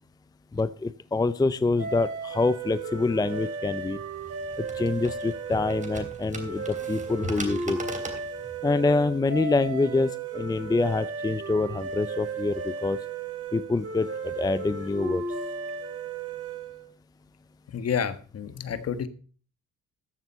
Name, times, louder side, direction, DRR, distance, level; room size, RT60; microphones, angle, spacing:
voice 1, 0.5-4.0 4.7-7.8 8.6-13.0 13.5-15.2, left 3 dB, 15° left, 15 dB, 0.5 m, -26 dB
sound 1, 1.8-16.9, right 4 dB, 50° right, 3.8 m, -35 dB
sound 2, 4.1-9.4, right 2 dB, 25° right, 3.1 m, -40 dB
voice 2, 17.7-19.1, left 7 dB, 55° left, 11 dB, 1.5 m, -30 dB
14.5 x 7.3 x 5.5 m, 0.40 s
cardioid pair, 90°, 30 cm